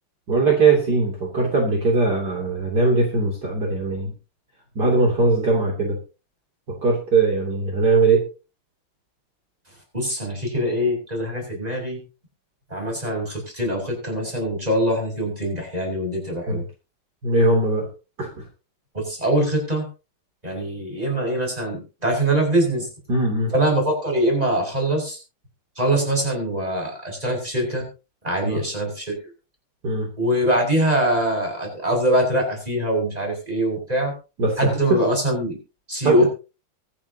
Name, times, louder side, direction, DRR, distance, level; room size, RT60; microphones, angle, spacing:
voice 1, 0.3-4.1 4.8-6.0 6.8-8.3 16.5-16.6 17.2-17.9 18.2-18.4 23.1-23.5 28.4-28.6 29.8-30.1 34.4-35.0 36.0-36.2, right 3 dB, 50° right, 0 dB, 3.6 m, -20 dB
voice 2, 9.9-12.0 12.7-16.6 18.9-19.9 20.4-22.9 23.5-25.2 25.8-27.9 28.2-29.1 30.2-34.1 34.6-35.6 35.9-36.3, right 1 dB, 15° right, 1 dB, 6.5 m, -23 dB
24.0 x 10.5 x 2.9 m, 0.32 s
omnidirectional pair, 2.3 m